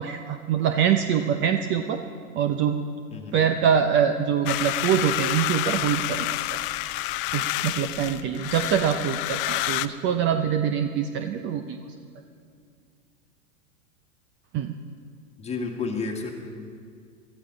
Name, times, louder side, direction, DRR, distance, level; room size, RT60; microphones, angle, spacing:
voice 1, 0.0-2.0 2.3-2.8 3.3-6.6 7.3-11.8 14.5-14.7, right 8 dB, 30° right, 7 dB, 0.6 m, -24 dB
voice 2, 3.1-3.4 15.4-16.3, left 4 dB, 15° left, 2 dB, 1.8 m, -31 dB
sound 1, 4.5-9.9, left 16 dB, 40° left, 0.5 m, -28 dB
18.0 x 14.0 x 3.9 m, 2.2 s
hypercardioid pair, 115°, 41 cm